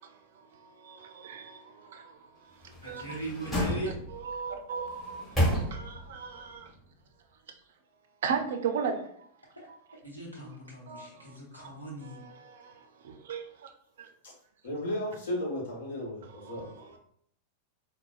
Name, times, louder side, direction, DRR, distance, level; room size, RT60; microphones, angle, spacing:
voice 1, 0.0-3.2 3.6-3.7 4.1-5.3 5.7-6.7 8.2-9.1 9.7-9.8 10.4-10.5 10.9-11.4 12.0-13.7 14.0-14.1 16.2-17.0, right 6 dB, 60° right, 0.4 m, -37 dB
sound 1, 2.6-4.3 4.9-6.2 6.5-6.6, equal, 15° left, 1.4 m, -31 dB
voice 2, 2.8-4.0 9.6-12.2, right 1 dB, 90° left, 0.9 m, -40 dB
voice 3, 14.6-16.7, left 1 dB, 65° left, 1.0 m, -34 dB
3.9 x 2.1 x 2.3 m
figure-of-eight pair, 90°, 0 cm